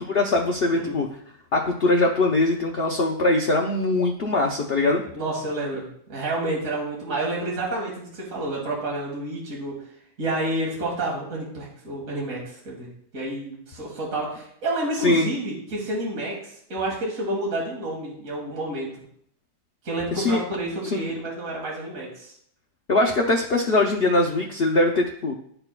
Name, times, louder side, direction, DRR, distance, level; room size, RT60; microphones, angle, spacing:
voice 1, 0.1-1.0 1.5-5.0 15.0-15.3 20.1-20.4 20.9-21.1 22.9-25.3, left 2 dB, 80° left, -1 dB, 0.5 m, -22 dB
voice 2, 5.1-5.8 6.1-9.8 10.2-12.4 12.7-12.9 13.1-16.4 16.7-18.9 19.8-22.3, right 2 dB, 50° right, -3 dB, 2.0 m, -29 dB
12.0 x 4.4 x 2.2 m, 0.67 s
omnidirectional pair, 1.9 m